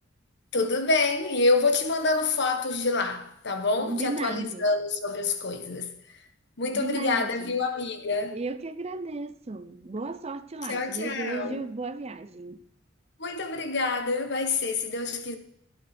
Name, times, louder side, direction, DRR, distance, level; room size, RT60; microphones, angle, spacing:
voice 1, 0.5-6.0 6.6-8.4 10.7-11.7 13.2-15.4, left 3 dB, 65° left, 1.3 m, -27 dB
voice 2, 3.8-4.6 6.7-7.5 8.3-12.6, right 3 dB, 35° right, 0.6 m, -34 dB
16.0 x 8.6 x 4.4 m
head